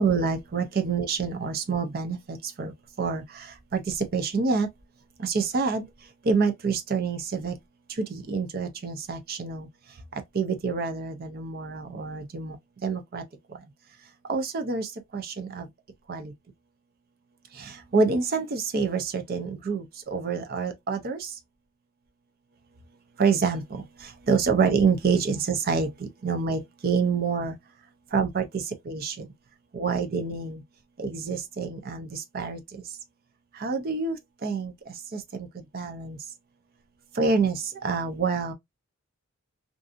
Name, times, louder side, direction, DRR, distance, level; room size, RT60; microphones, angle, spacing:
voice 1, 0.0-2.7 3.0-3.5 3.7-4.7 5.2-5.9 6.3-7.5 8.0-9.7 10.3-12.6 12.8-13.2 14.3-15.7 16.1-16.3 17.6-21.3 23.2-23.8 24.3-27.5 28.1-29.3 29.7-30.6 31.0-32.8 33.6-34.7 35.1-36.2 37.2-38.5, right 5 dB, 45° right, 0.5 m, -27 dB
2.6 x 2.4 x 2.4 m
head